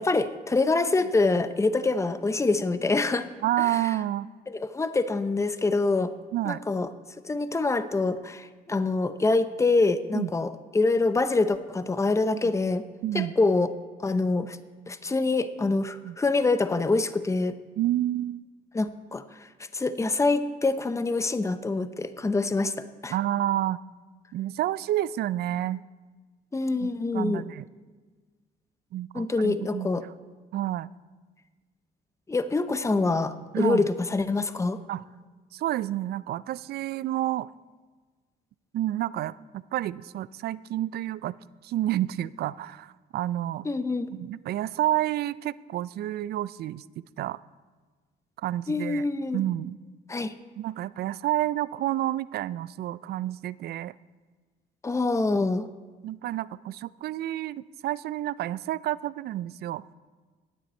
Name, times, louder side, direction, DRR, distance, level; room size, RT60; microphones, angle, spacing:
voice 1, 0.0-3.3 3.6-3.8 4.5-6.1 6.5-6.9 7.2-12.8 13.1-13.7 14.0-14.6 14.9-17.5 18.7-19.5 19.7-23.1 26.5-27.4 29.1-30.0 32.3-34.8 43.6-44.1 48.7-49.4 50.1-50.3 54.8-55.7, left 3 dB, 15° left, 12 dB, 0.7 m, -25 dB
voice 2, 3.4-4.3 6.3-6.6 10.1-10.3 13.0-13.3 16.0-16.2 17.8-18.4 23.1-23.8 24.3-25.8 26.8-27.6 28.9-29.9 30.5-30.9 33.5-33.9 34.9-35.1 35.5-37.5 38.7-41.3 41.6-43.7 44.1-47.4 48.4-49.1 49.3-49.8 50.6-53.9 56.0-59.8, right 13 dB, 65° right, 19 dB, 0.4 m, -29 dB
16.5 x 10.0 x 4.3 m, 1.4 s
cardioid pair, 80°, 18 cm